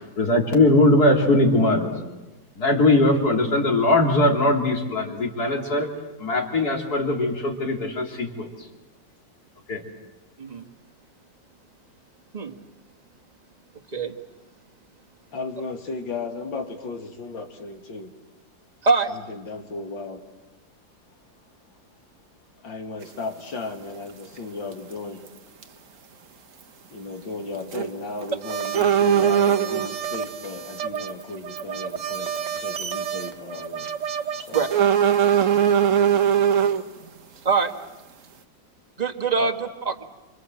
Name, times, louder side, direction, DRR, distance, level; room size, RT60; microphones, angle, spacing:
voice 1, 0.2-1.9 2.6-5.9 6.2-8.5 9.7-9.8, left 2 dB, 55° left, 3.8 m, -20 dB
voice 2, 15.3-18.1 19.1-20.2 22.6-25.2 26.9-33.9 34.3-34.7 39.4-39.5, left 3 dB, 85° left, 3.1 m, -35 dB
voice 3, 18.8-19.1 34.5-34.7 37.4-37.7 39.0-40.0, right 4 dB, 25° right, 1.6 m, -23 dB
sound 1, 23.0-23.1 24.7-24.9 25.3-25.4 25.6-25.7 27.6-27.9 28.2-28.3 28.7-29.9 30.9-31.1 31.6-31.7 32.1-32.4 32.8-32.9 34.7-36.8, right 9 dB, 50° right, 1.3 m, -19 dB
sound 2, 28.4-34.8, right 7 dB, 70° right, 1.9 m, -32 dB
27.5 x 27.0 x 7.9 m
omnidirectional pair, 2.0 m